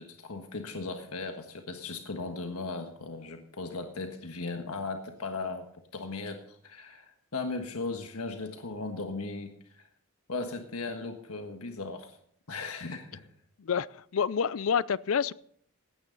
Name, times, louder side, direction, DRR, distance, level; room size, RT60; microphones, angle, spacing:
voice 1, 0.0-5.7 5.9-9.9 10.3-12.2 12.5-13.3, left 3 dB, 90° left, 5 dB, 1.5 m, -37 dB
voice 2, 13.6-15.3, left 7 dB, 70° left, 20 dB, 0.4 m, -28 dB
17.0 x 12.0 x 4.0 m, 0.63 s
head